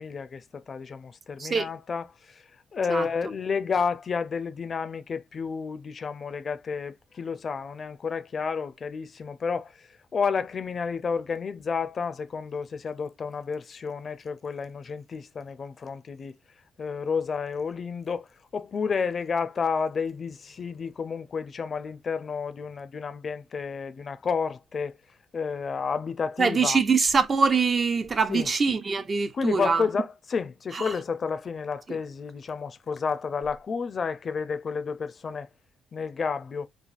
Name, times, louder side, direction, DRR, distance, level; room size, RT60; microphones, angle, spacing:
voice 1, 0.0-2.0 2.7-9.7 10.1-16.3 16.8-18.3 18.5-25.0 25.3-26.8 28.3-28.5 29.3-35.5 35.9-36.7, left 5 dB, 45° left, 0.4 m, -31 dB
voice 2, 26.4-29.9 30.7-30.9 31.9-32.0, right 5 dB, 40° right, 0.4 m, -24 dB
3.3 x 2.0 x 2.4 m
cardioid pair, 90°, 0 cm